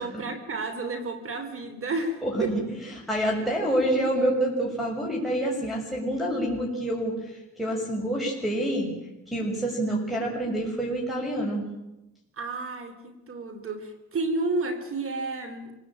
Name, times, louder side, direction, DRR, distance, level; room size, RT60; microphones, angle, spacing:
voice 1, 0.0-2.5 12.3-15.7, right 2 dB, 45° right, 9 dB, 3.6 m, -31 dB
voice 2, 2.2-2.8 3.1-8.9 9.3-11.7, right 1 dB, ahead, -4 dB, 6.8 m, -27 dB
27.5 x 17.5 x 9.0 m, 0.95 s
cardioid pair, 90°, 30 cm